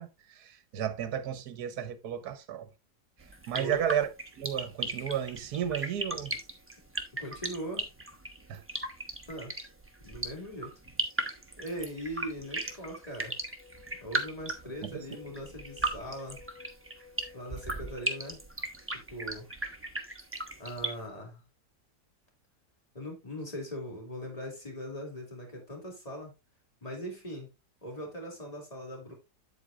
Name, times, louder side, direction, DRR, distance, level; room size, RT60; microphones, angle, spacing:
voice 1, 0.0-2.7 3.5-4.1 4.4-6.3 8.5-8.6 14.8-15.0, right 9 dB, 75° right, 1.3 m, -33 dB
sound 1, 3.2-20.9, right 2 dB, 10° right, 0.7 m, -36 dB
voice 2, 7.2-7.9 9.3-9.5 10.0-10.7 11.6-13.3 14.0-16.4 17.3-18.4 19.1-19.5 20.6-21.4 22.9-26.3 26.8-27.5 27.8-29.1, equal, 20° left, 2.8 m, -40 dB
sound 2, 12.4-18.4, left 5 dB, 70° left, 3.9 m, -55 dB
8.3 x 8.0 x 2.4 m
omnidirectional pair, 1.7 m